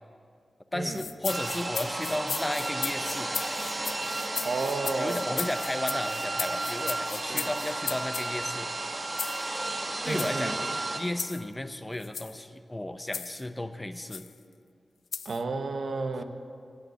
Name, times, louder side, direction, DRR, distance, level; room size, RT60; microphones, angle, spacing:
voice 1, 0.7-3.3 4.8-8.7 10.0-10.6 11.0-14.3, left 1 dB, 20° left, 9 dB, 0.8 m, -34 dB
sound 1, 0.9-8.3 9.2-9.4 10.1-10.3 11.2-11.4 12.0-12.4 13.1-13.4 14.1-14.3 15.1-15.4, left 6 dB, 85° left, 0.3 m, -36 dB
sound 2, 1.3-11.0, right 2 dB, 35° right, 1.7 m, -33 dB
voice 2, 4.4-5.4 7.3-7.5 10.1-10.6 15.2-16.2, right 3 dB, 70° right, 5 dB, 1.2 m, -32 dB
17.0 x 9.8 x 8.0 m, 2.3 s
wide cardioid pair, 85°, 0 cm